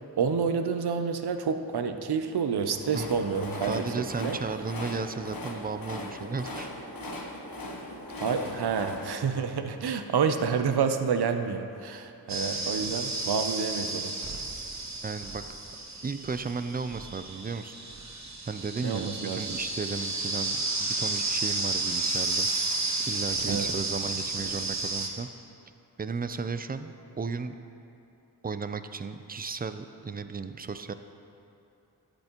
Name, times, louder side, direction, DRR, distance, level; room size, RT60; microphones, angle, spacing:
voice 1, 0.2-3.8 4.2-4.4 8.2-14.1 18.8-19.6 23.5-23.7, right 6 dB, 75° right, 7 dB, 0.6 m, -29 dB
Train, 2.4-10.5, left 1 dB, 60° left, 1.2 m, -40 dB
voice 2, 3.6-6.7 15.0-15.4 16.0-17.7 18.5-22.7 23.1-25.3 26.0-27.5 28.4-30.9, right 4 dB, 25° right, 10 dB, 0.4 m, -34 dB
sound 1, 12.3-25.1, right 3 dB, 45° right, 1.1 m, -32 dB
13.5 x 8.1 x 3.0 m, 2.8 s
wide cardioid pair, 50°, 39 cm